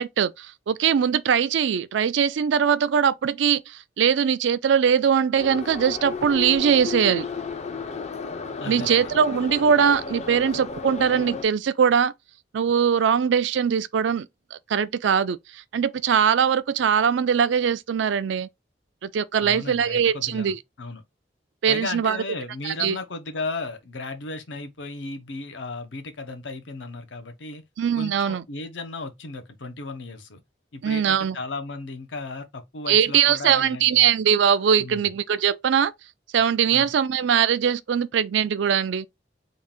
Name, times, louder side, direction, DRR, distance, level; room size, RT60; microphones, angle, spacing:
voice 1, 0.0-7.3 8.7-12.1 12.5-18.5 19.0-20.6 21.6-22.2 22.6-23.0 27.8-28.4 30.8-31.4 32.9-35.9 36.3-39.1, right 7 dB, 75° right, 0.4 m, -21 dB
Subway metro underground, 5.4-11.4, left 4 dB, 40° left, 0.5 m, -33 dB
voice 2, 8.6-9.1 19.4-21.0 21.7-27.6 28.0-30.4 30.7-34.1 34.8-35.1 36.7-36.9, left 3 dB, 80° left, 0.8 m, -35 dB
3.8 x 2.4 x 3.6 m
head